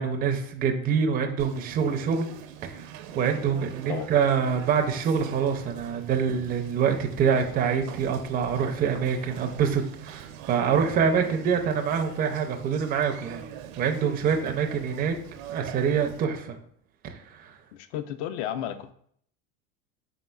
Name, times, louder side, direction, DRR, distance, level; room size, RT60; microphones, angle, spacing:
voice 1, 0.0-2.3 2.6-2.9 3.1-13.4 13.8-15.2 15.5-16.6 17.0-17.5, right 6 dB, 25° right, 5 dB, 0.4 m, -25 dB
Conversation, 1.4-16.2, right 9 dB, 70° right, 0.6 m, -42 dB
voice 2, 17.7-18.9, left 10 dB, 60° left, 11 dB, 0.5 m, -33 dB
4.4 x 3.6 x 2.3 m, 0.64 s
supercardioid pair, 105°, 41 cm